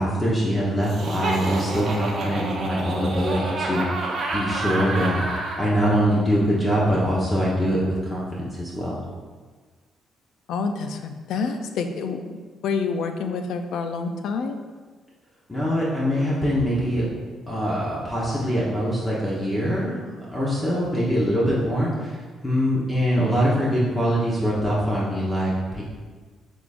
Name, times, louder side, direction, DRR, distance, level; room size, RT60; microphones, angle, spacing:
voice 1, 0.0-3.9 4.3-9.0 15.5-17.1 17.5-25.8, equal, 20° left, -6 dB, 1.0 m, -23 dB
Laughter, 0.8-5.7, right 2 dB, 55° right, 0.8 m, -28 dB
voice 2, 10.5-12.4 12.6-14.6, left 5 dB, 80° left, 7 dB, 0.4 m, -28 dB
5.9 x 3.5 x 2.5 m, 1.4 s
cardioid pair, 90°, 0 cm